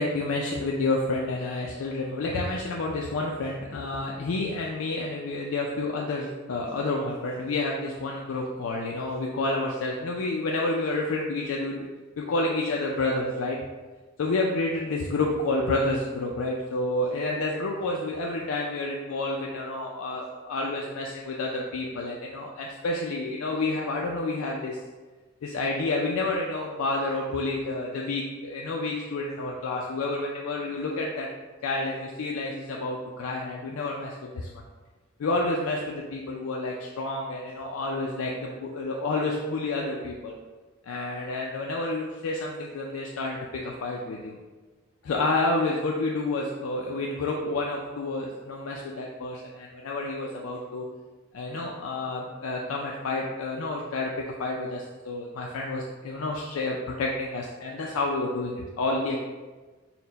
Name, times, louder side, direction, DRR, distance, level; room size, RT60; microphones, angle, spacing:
voice 1, 0.0-11.9 12.2-13.6 14.2-24.8 25.4-31.3 31.6-34.5 35.2-40.4 40.8-44.4 45.0-50.9 51.3-59.2, left 2 dB, 90° left, -1 dB, 0.4 m, -29 dB
4.3 x 2.1 x 3.9 m, 1.3 s
head